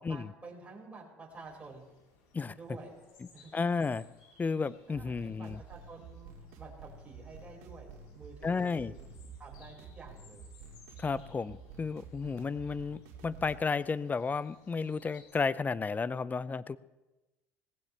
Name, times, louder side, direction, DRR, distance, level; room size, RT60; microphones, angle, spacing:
voice 1, 0.0-1.9 2.5-3.0 3.3-3.5 4.9-8.9 9.4-10.5, right 3 dB, 20° right, -2 dB, 5.5 m, -50 dB
sound 1, 1.3-15.3, left 4 dB, 70° left, 5.8 m, -63 dB
voice 2, 3.5-4.0 4.4-5.6 8.4-8.9 11.0-16.8, left 4 dB, 25° left, 18 dB, 0.6 m, -32 dB
sound 2, 4.9-13.6, right 4 dB, 70° right, 2.2 m, -50 dB
18.5 x 15.5 x 3.4 m, 1.1 s
hypercardioid pair, 70°, 7 cm